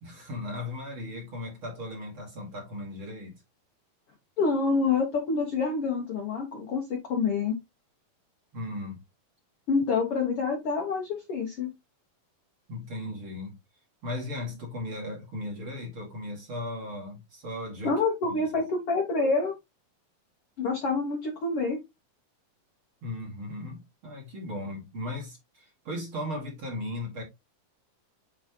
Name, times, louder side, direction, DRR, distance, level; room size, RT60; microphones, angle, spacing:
voice 1, 0.0-3.4 8.5-9.0 12.7-13.5 14.0-18.5 23.0-27.2, left 1 dB, 40° right, 2.6 m, -37 dB
voice 2, 4.4-7.6 9.7-11.7 17.8-19.6 20.6-21.8, left 4 dB, 55° left, 1.7 m, -27 dB
8.3 x 4.1 x 2.9 m
omnidirectional pair, 4.1 m